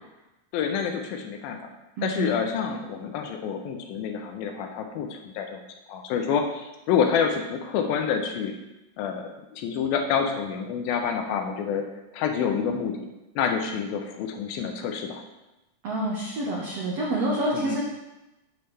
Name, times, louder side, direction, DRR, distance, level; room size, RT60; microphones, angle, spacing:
voice 1, 0.5-1.6 2.0-5.6 5.9-8.5 9.0-9.2 9.5-11.8 12.1-13.0 13.4-15.2 17.5-17.8, left 7 dB, 80° left, 4 dB, 2.4 m, -27 dB
voice 2, 2.0-2.4 15.8-17.8, right 1 dB, 75° right, -4 dB, 1.4 m, -27 dB
7.8 x 7.1 x 3.3 m, 0.99 s
omnidirectional pair, 4.4 m